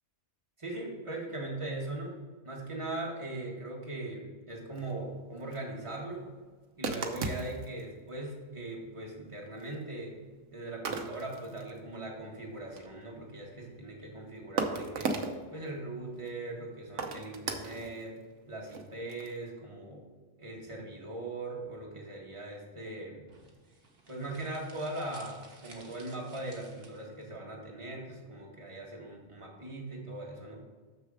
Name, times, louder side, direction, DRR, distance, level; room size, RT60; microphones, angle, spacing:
voice 1, 0.6-2.2 2.4-6.3 6.8-10.2 10.5-15.1 15.5-18.2 18.5-20.0 20.4-23.2 24.1-30.6, right 2 dB, 25° right, -2 dB, 1.7 m, -40 dB
sound 1, 4.7-4.9 5.4-5.6 6.8-7.8 8.9-9.0 9.5-9.7 10.8-11.8 12.0-12.1 12.4-13.2 14.0-14.1 14.6-15.4 16.2-16.3 17.0-18.1 18.7-19.4, right 4 dB, 85° right, 1.2 m, -36 dB
sound 2, 23.3-27.3, right 3 dB, 50° right, 1.4 m, -55 dB
6.7 x 6.6 x 4.8 m, 1.4 s
omnidirectional pair, 1.2 m